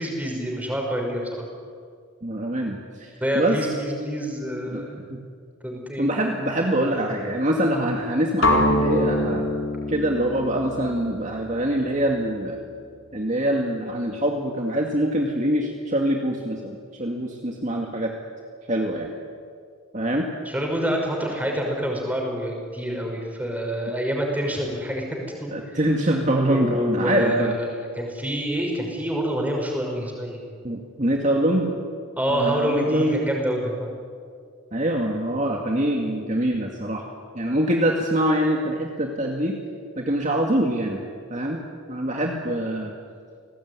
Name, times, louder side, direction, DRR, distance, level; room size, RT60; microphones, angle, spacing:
voice 1, 0.0-1.5 3.2-5.1 5.6-6.1 6.8-6.9 20.5-25.5 26.4-30.4 32.2-33.9, equal, 5° right, 0 dB, 5.8 m, -27 dB
voice 2, 2.2-3.6 4.7-5.2 6.0-9.5 9.9-12.6 13.1-18.1 18.7-19.1 19.9-20.3 25.5-27.6 30.6-31.7 32.3-33.2 34.7-37.0 37.3-39.6 40.0-41.0 41.3-41.6 41.9-42.9, right 1 dB, 35° right, 1 dB, 2.2 m, -24 dB
sound 1, 8.4-12.4, left 1 dB, 70° left, 4.1 m, -25 dB
30.0 x 19.5 x 9.7 m, 2.2 s
head